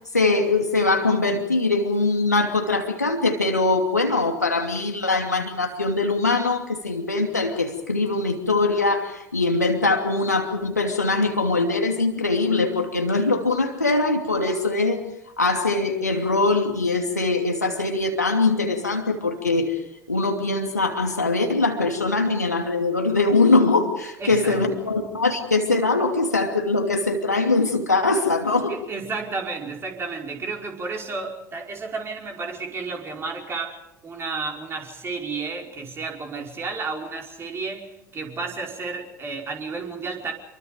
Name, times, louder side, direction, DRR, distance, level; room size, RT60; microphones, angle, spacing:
voice 1, 0.1-15.0 15.4-19.8 20.1-28.7, left 3 dB, 85° left, 3 dB, 2.7 m, -22 dB
voice 2, 24.2-24.8 28.7-40.3, right 4 dB, 30° right, 1 dB, 5.3 m, -32 dB
28.5 x 23.5 x 5.2 m, 0.84 s
figure-of-eight pair, 70°, 9 cm